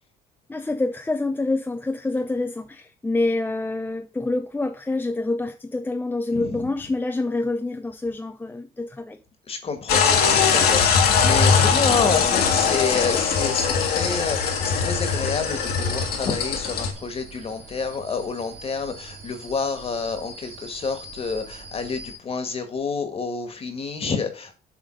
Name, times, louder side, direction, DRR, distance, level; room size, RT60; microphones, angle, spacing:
voice 1, 0.5-9.2, left 2 dB, 10° left, 0.6 m, -27 dB
voice 2, 6.3-6.7 9.5-10.0 10.5-24.6, left 5 dB, 35° left, 1.8 m, -28 dB
sound 1, 9.9-16.9, left 6 dB, 65° left, 1.9 m, -21 dB
sound 2, 12.1-22.2, right 3 dB, 75° right, 3.0 m, -41 dB
7.4 x 3.6 x 6.5 m
cardioid pair, 110°, 17 cm